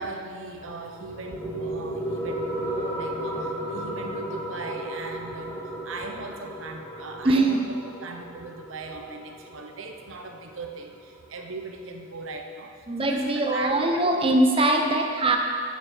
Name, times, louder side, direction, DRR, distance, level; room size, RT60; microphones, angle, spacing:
voice 1, 0.0-14.1 14.6-14.9, right 3 dB, 80° right, 3 dB, 0.9 m, -38 dB
sound 1, 0.6-11.6, right 1 dB, 10° left, 1.1 m, -35 dB
voice 2, 7.2-7.6 12.9-15.4, right 2 dB, 25° right, 3 dB, 0.9 m, -22 dB
9.2 x 8.6 x 5.6 m, 2.1 s
head